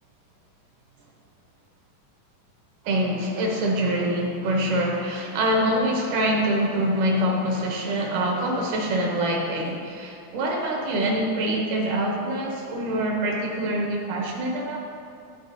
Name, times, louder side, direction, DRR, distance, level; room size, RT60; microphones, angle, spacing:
voice 1, 2.9-14.8, right 1 dB, 75° right, 0 dB, 2.3 m, -25 dB
13.0 x 4.4 x 2.6 m, 2.4 s
omnidirectional pair, 3.8 m